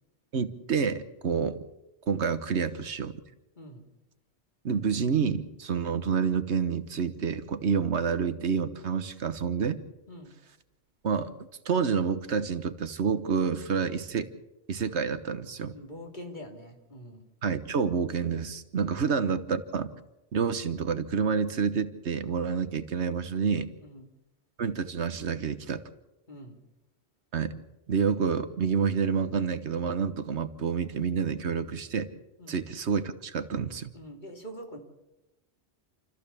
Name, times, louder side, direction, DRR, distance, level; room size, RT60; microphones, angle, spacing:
voice 1, 0.3-1.6 2.1-3.2 4.6-9.8 11.0-11.3 11.6-14.3 14.7-15.7 17.4-19.9 20.3-23.7 24.6-25.8 27.3-27.6 27.9-32.1 32.5-33.9, right 6 dB, 80° right, 11 dB, 1.4 m, -28 dB
voice 2, 15.7-17.3 18.9-19.1 23.8-24.1 26.3-26.6 32.4-32.6 33.9-34.8, equal, 45° left, 2 dB, 3.1 m, -44 dB
28.5 x 14.5 x 7.0 m, 0.99 s
omnidirectional pair, 1.1 m